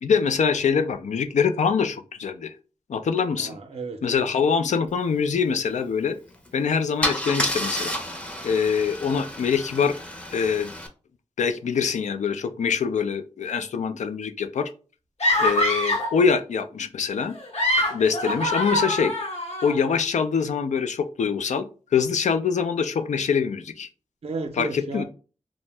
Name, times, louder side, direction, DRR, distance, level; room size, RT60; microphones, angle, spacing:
voice 1, 0.0-2.5 2.9-3.6 4.0-6.2 6.5-8.0 8.4-9.9 10.3-10.7 11.4-14.7 15.4-17.3 17.9-19.1 19.6-21.6 21.9-23.9 24.6-25.0, left 6 dB, 80° left, 0.4 m, -24 dB
voice 2, 3.4-4.2 24.2-25.0, right 4 dB, 60° right, 0.5 m, -33 dB
Car / Engine starting / Idling, 6.3-6.5 7.0-10.9, equal, 10° left, 0.6 m, -30 dB
sound 1, 15.2-16.2 17.3-19.7, left 1 dB, 65° left, 0.9 m, -24 dB
2.7 x 2.1 x 3.2 m
wide cardioid pair, 80°, 12 cm